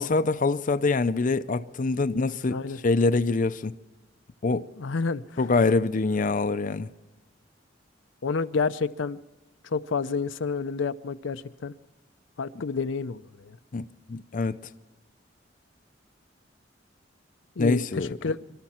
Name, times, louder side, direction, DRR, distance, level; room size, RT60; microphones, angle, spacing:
voice 1, 0.0-3.7 4.4-4.7 5.4-6.9 13.7-14.6 17.6-18.2, left 3 dB, 45° left, 0.5 m, -25 dB
voice 2, 4.8-5.2 8.2-9.2 9.6-11.7 12.4-13.6 17.6-18.4, left 4 dB, 85° left, 0.6 m, -29 dB
25.5 x 12.5 x 4.3 m
head